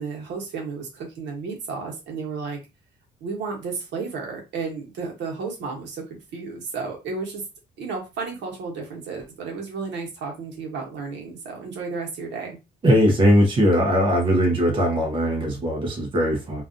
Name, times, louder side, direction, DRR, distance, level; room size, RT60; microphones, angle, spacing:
voice 1, 0.0-2.6 3.2-7.4 7.8-12.6, right 4 dB, 75° right, 0.9 m, -32 dB
voice 2, 12.8-16.6, equal, 25° right, 0.6 m, -20 dB
2.4 x 2.3 x 2.5 m
cardioid pair, 155°, 18 cm